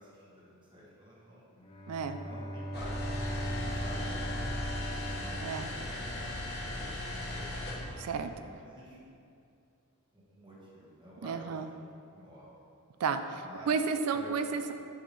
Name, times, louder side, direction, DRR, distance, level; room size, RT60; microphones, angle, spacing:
voice 1, 0.0-1.5 2.2-6.5 6.8-6.9 7.3-7.4 8.2-9.2 10.1-11.6 12.1-12.5 13.4-13.7 14.1-14.6, equal, 20° right, -7 dB, 1.3 m, -51 dB
Bowed string instrument, 1.6-6.6, equal, 25° left, 0.5 m, -39 dB
voice 2, 1.9-2.2 5.4-5.7 8.0-8.3 11.2-11.7 13.0-14.7, right 5 dB, 85° right, 8 dB, 0.4 m, -32 dB
sound 1, 2.7-7.9, left 1 dB, 50° left, 0.9 m, -37 dB
6.1 x 5.6 x 3.2 m, 2.5 s
head